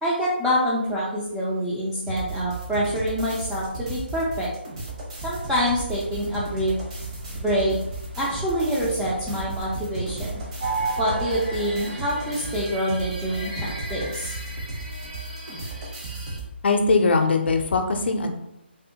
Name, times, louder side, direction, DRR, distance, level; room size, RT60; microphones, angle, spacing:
voice 1, 0.0-4.5 5.2-6.7 7.3-7.8 8.1-10.3 11.0-14.3, equal, 5° right, -9 dB, 0.3 m, -26 dB
sound 1, 2.1-16.5, right 2 dB, 30° right, 0.8 m, -35 dB
sound 2, 5.1-11.9, right 2 dB, 70° right, 1.0 m, -42 dB
sound 3, 10.6-16.4, right 3 dB, 50° right, 1.2 m, -34 dB
voice 2, 16.6-18.3, left 3 dB, 65° left, 5 dB, 0.5 m, -21 dB
3.4 x 2.1 x 2.8 m, 0.82 s
hypercardioid pair, 160°, 6 cm